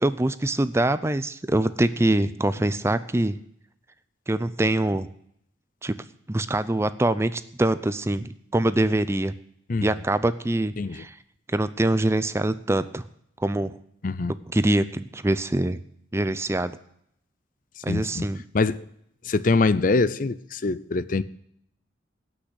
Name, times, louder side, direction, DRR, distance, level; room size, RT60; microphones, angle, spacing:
voice 1, 0.0-3.4 4.3-5.1 5.8-5.9 6.3-9.3 9.8-11.2 11.5-13.0 13.4-13.7 14.5-15.8 16.1-16.8 17.8-18.4, right 1 dB, 15° right, 14 dB, 0.5 m, -24 dB
voice 2, 17.9-18.3 18.5-18.8 19.2-21.2, left 3 dB, 45° left, 16 dB, 0.5 m, -24 dB
18.0 x 6.3 x 8.1 m, 0.71 s
head